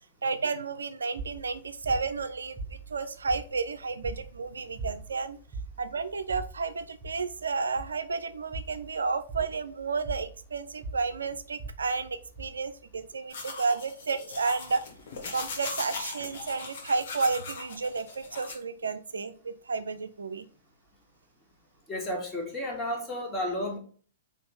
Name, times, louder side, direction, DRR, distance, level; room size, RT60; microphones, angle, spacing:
voice 1, 0.2-5.4 5.8-14.8 15.3-20.4, right 4 dB, 70° right, 10 dB, 0.5 m, -32 dB
sound 1, 1.2-13.2, right 3 dB, 25° right, 1.3 m, -42 dB
sound 2, 13.3-18.5, left 4 dB, 50° left, 1.6 m, -39 dB
voice 2, 21.9-23.8, left 1 dB, 15° left, -1 dB, 2.0 m, -32 dB
4.6 x 4.3 x 5.2 m, 0.43 s
figure-of-eight pair, 110°, 0 cm